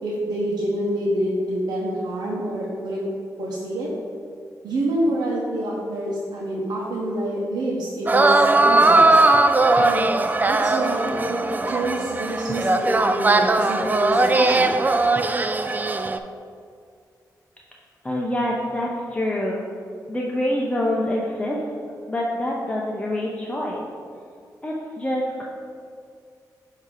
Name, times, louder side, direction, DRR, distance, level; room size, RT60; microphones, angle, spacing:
voice 1, 0.0-3.0 3.4-3.9 4.6-9.2 9.8-10.1 10.4-11.4 11.7-14.7, right 1 dB, 85° right, -5 dB, 0.9 m, -27 dB
sound 1, 8.1-16.2, right 2 dB, 25° right, 0.4 m, -19 dB
voice 2, 18.0-19.6 20.1-21.7 22.1-23.8 24.6-25.4, left 1 dB, 20° left, -3 dB, 0.7 m, -26 dB
8.3 x 2.8 x 4.9 m, 2.2 s
cardioid pair, 75°, 7 cm